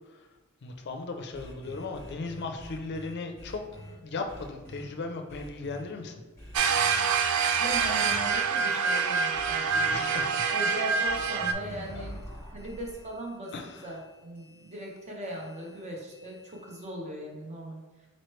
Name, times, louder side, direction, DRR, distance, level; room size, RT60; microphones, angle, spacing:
voice 1, 0.6-3.6 4.0-6.1 9.9-10.5 11.9-12.0 13.5-13.9, left 3 dB, 55° left, 5 dB, 0.5 m, -37 dB
sound 1, 1.3-3.9 4.3-4.9 5.3-5.8 6.4-7.0 7.7-8.3 9.3-9.9 11.0-16.9, equal, 15° left, 1.3 m, -47 dB
sound 2, 6.5-11.5, right 5 dB, 80° right, 0.4 m, -26 dB
voice 2, 7.6-10.1 10.5-12.2 12.5-13.5 13.8-17.8, right 1 dB, 30° right, -1 dB, 0.8 m, -39 dB
4.2 x 3.0 x 3.1 m, 1.2 s
head